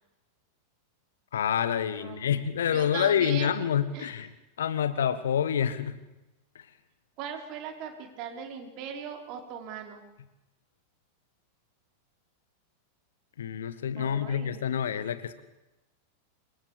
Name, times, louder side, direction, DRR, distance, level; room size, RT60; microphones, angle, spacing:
voice 1, 1.3-4.3 4.6-5.9 13.4-15.4, left 8 dB, 65° left, 12 dB, 1.7 m, -27 dB
voice 2, 2.0-2.4 2.7-3.5 3.9-4.2 7.2-10.0 14.0-14.7, right 8 dB, 40° right, 4 dB, 4.7 m, -39 dB
27.5 x 24.0 x 5.1 m, 0.97 s
figure-of-eight pair, 90°, 0 cm